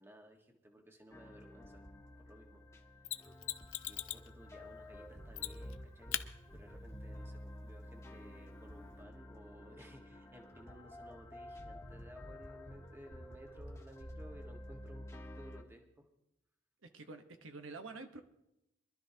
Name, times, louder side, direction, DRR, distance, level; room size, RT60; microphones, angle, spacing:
voice 1, 0.0-1.8 2.2-2.6 3.8-6.2 6.5-16.1, equal, 10° right, 2 dB, 1.4 m, -57 dB
sound 1, 1.1-15.6, left 1 dB, 15° left, 1.4 m, -50 dB
Mechanisms, 3.0-4.3 5.3-5.8 6.1-6.3 9.0-9.1, left 13 dB, 85° left, 0.6 m, -39 dB
voice 2, 16.8-18.2, right 3 dB, 90° right, 6 dB, 1.1 m, -48 dB
24.0 x 12.5 x 2.8 m, 0.86 s
head